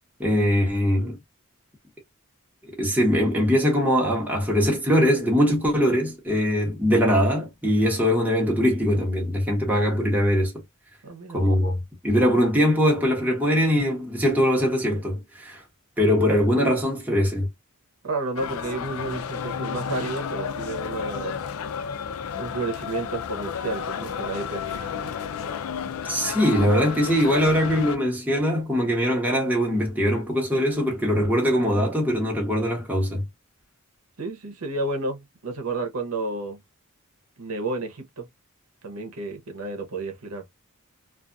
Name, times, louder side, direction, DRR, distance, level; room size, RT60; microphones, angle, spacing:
voice 1, 0.2-1.2 2.6-10.5 11.3-11.8 12.0-15.6 16.0-17.5 26.1-33.2, equal, 5° right, 1.0 m, -22 dB
voice 2, 11.0-11.5 18.0-21.3 22.0-25.1 34.2-36.6 37.4-38.3 38.8-40.4, right 2 dB, 75° right, 0.8 m, -31 dB
sound 1, 18.4-28.0, left 7 dB, 70° left, 0.4 m, -32 dB
2.4 x 2.3 x 2.5 m
head